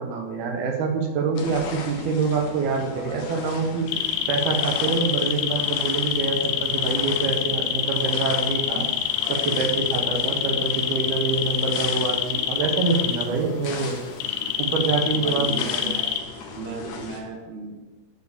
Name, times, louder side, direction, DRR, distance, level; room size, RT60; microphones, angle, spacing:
voice 1, 0.0-3.9 4.3-8.9 9.3-14.0 14.6-16.0, right 4 dB, 85° right, 2 dB, 3.4 m, -25 dB
sound 1, 1.3-17.2, left 4 dB, 65° left, 2.7 m, -38 dB
sound 2, 3.9-13.2 14.2-16.2, left 9 dB, 85° left, 2.7 m, -27 dB
voice 2, 15.1-16.2 16.5-17.8, right 3 dB, 60° right, 2 dB, 2.4 m, -35 dB
12.5 x 5.1 x 6.9 m, 1.2 s
omnidirectional pair, 4.3 m